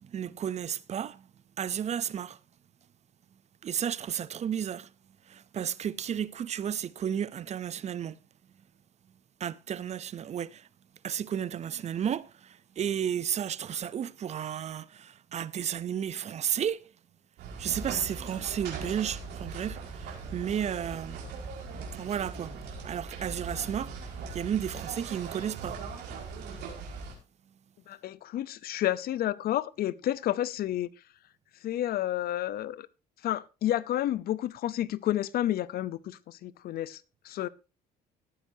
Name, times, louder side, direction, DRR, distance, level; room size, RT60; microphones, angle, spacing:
voice 1, 0.1-1.2 1.6-2.4 3.6-4.9 5.3-8.2 9.4-10.6 11.0-16.8 17.6-21.2 21.9-22.5 22.8-23.9 24.3-25.8, right 9 dB, 40° right, 0.6 m, -33 dB
sound 1, 17.4-27.1, right 4 dB, 80° right, 5.1 m, -40 dB
voice 2, 27.9-30.9 31.6-32.9 33.2-37.5, left 13 dB, 65° left, 0.7 m, -30 dB
18.5 x 9.1 x 2.7 m
cardioid pair, 110°, 17 cm